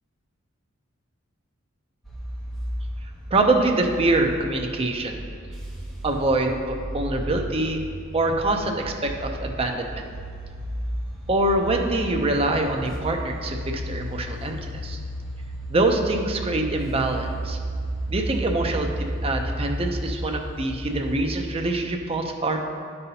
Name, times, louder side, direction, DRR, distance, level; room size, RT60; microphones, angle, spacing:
sound 1, 2.0-21.6, right 1 dB, ahead, 0.9 m, -33 dB
voice 1, 3.3-5.2 6.0-7.8 8.1-10.1 11.3-14.6 14.8-15.0 15.7-17.6 18.1-22.6, right 2 dB, 25° right, 3 dB, 0.5 m, -24 dB
10.5 x 5.4 x 2.8 m, 2.2 s
head